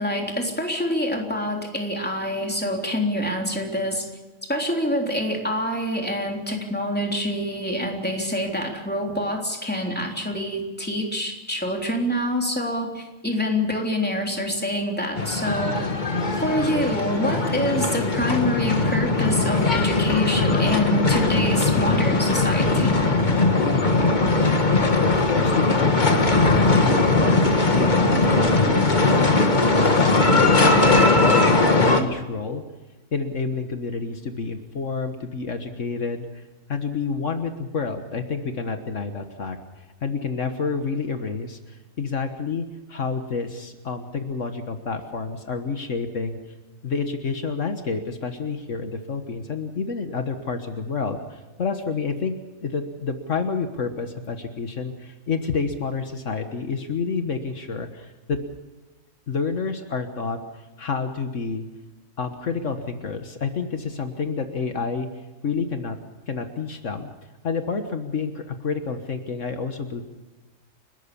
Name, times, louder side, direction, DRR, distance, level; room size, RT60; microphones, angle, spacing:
voice 1, 0.0-4.1 4.5-15.7 16.4-22.9, left 1 dB, 5° left, 1 dB, 3.5 m, -26 dB
sound 1, 15.1-32.0, left 3 dB, 35° left, 1.9 m, -19 dB
voice 2, 25.0-27.4 27.7-30.5 30.9-32.6 33.1-36.4 36.7-39.6 40.0-46.4 46.8-52.3 52.6-58.4 59.3-60.4 60.8-61.7 62.2-65.1 65.4-66.0 66.3-67.1 67.4-70.0, left 5 dB, 70° left, 7 dB, 1.7 m, -29 dB
30.0 x 13.0 x 7.0 m, 1.2 s
omnidirectional pair, 1.3 m